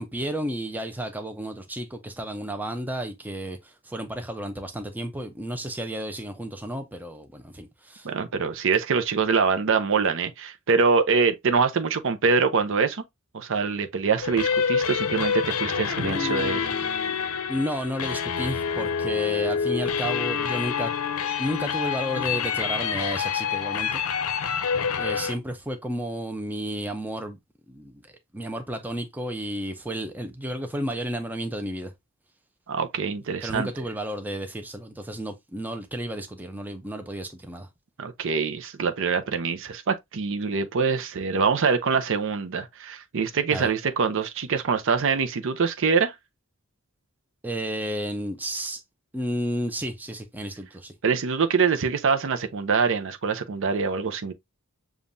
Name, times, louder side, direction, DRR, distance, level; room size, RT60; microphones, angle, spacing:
voice 1, 0.0-8.1 15.9-17.2 17.5-20.9 21.4-24.0 25.0-27.4 27.7-28.0 28.3-31.9 33.4-37.7 43.5-43.7 47.4-48.8 49.1-50.9, equal, 10° right, 0.6 m, -32 dB
voice 2, 8.0-13.0 13.3-16.6 32.7-33.7 38.0-46.1 51.0-54.3, right 5 dB, 65° right, 0.6 m, -24 dB
sound 1, 14.2-25.3, left 6 dB, 75° left, 0.6 m, -27 dB
7.0 x 2.4 x 2.6 m
head